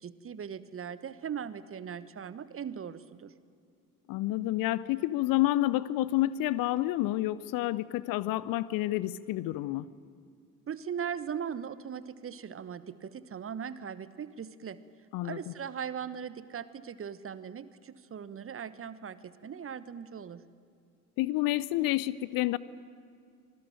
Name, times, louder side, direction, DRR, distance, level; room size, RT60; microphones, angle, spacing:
voice 1, 0.0-3.3 10.7-14.8 15.2-20.4, right 7 dB, 30° right, 15 dB, 1.2 m, -39 dB
voice 2, 4.1-9.9 15.1-15.4 21.2-22.6, left 16 dB, 50° left, 19 dB, 0.8 m, -29 dB
26.0 x 20.0 x 9.1 m, 2.3 s
figure-of-eight pair, 55°, 43 cm